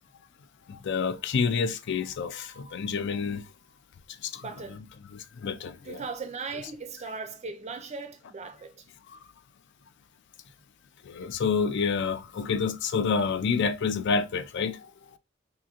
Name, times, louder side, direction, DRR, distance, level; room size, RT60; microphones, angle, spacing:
voice 1, 0.7-3.4 4.2-4.9 5.4-6.1 6.5-6.6 11.1-14.8, left 5 dB, 55° left, 0.4 m, -28 dB
voice 2, 4.3-4.8 5.8-8.9, right 4 dB, 30° right, 0.4 m, -38 dB
3.5 x 2.6 x 2.8 m
head